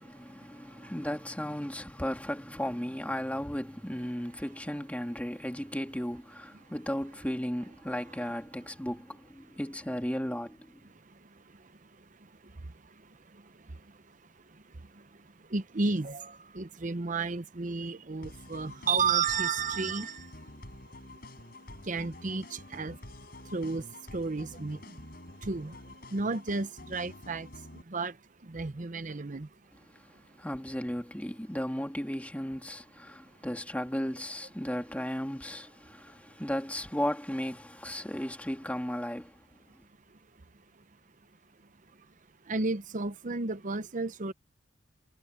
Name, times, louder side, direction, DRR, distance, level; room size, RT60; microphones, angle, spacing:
voice 1, 0.0-10.8 29.9-39.4, equal, 10° left, 2.2 m, -35 dB
voice 2, 15.5-20.3 21.9-23.0 23.5-23.8 24.1-24.8 25.4-25.7 26.1-27.5 27.9-28.1 28.5-29.5 42.5-44.3, right 4 dB, 45° right, 0.8 m, -32 dB
sound 1, 18.2-27.8, left 1 dB, 55° left, 5.0 m, -48 dB
head